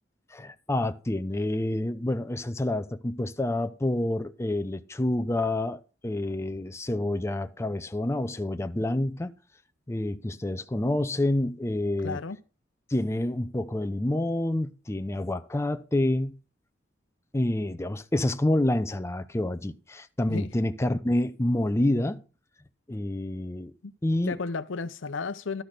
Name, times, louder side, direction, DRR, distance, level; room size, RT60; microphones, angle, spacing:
voice 1, 0.3-9.3 9.9-12.2 12.9-16.3 17.3-22.2 22.9-23.7 24.0-24.4, left 1 dB, 15° left, 0.5 m, -28 dB
voice 2, 12.0-12.4 20.3-20.5 23.8-23.9 24.3-25.6, left 4 dB, 90° left, 0.7 m, -33 dB
12.0 x 6.1 x 5.1 m
head